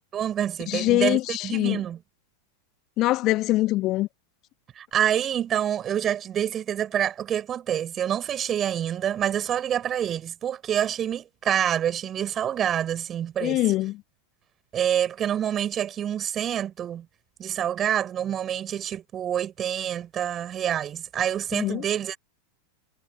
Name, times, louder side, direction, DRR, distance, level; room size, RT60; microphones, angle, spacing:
voice 1, 0.1-2.0 4.7-13.6 14.7-17.1 17.4-22.2, right 10 dB, 25° right, 7.6 m, -27 dB
voice 2, 0.7-1.8 3.0-4.1 13.4-14.0 21.5-21.8, left 17 dB, 35° left, 1.8 m, -23 dB
figure-of-eight pair, 90°, 0 cm